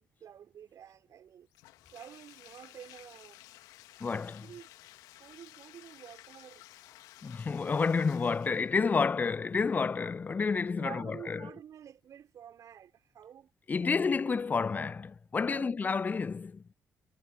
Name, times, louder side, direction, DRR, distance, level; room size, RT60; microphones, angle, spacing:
voice 1, 0.0-1.5 1.9-3.4 4.4-4.7 5.2-6.6 10.8-13.5 13.8-14.4 15.5-15.8, right 9 dB, 55° right, 4.3 m, -49 dB
Bathtub (filling or washing), 1.5-8.8, left 17 dB, 70° left, 2.6 m, -55 dB
voice 2, 4.0-4.5 7.2-11.4 13.7-16.6, left 5 dB, 25° left, 0.3 m, -30 dB
figure-of-eight pair, 45°, 7 cm